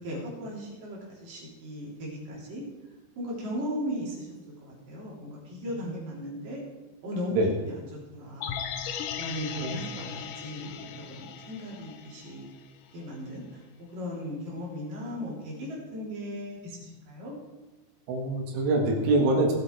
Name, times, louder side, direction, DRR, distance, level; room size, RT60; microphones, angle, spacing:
voice 1, 0.0-2.6 3.2-4.3 4.6-6.6 7.0-7.9 8.1-8.6 9.2-12.5 12.9-13.6 13.9-17.3, equal, 55° right, -4 dB, 5.0 m, -37 dB
sound 1, 8.4-12.6 12.9-13.0, left 8 dB, 85° left, 1.9 m, -38 dB
voice 2, 18.1-19.5, right 2 dB, 75° right, 0 dB, 3.9 m, -24 dB
18.5 x 8.1 x 4.7 m, 1.1 s
omnidirectional pair, 5.0 m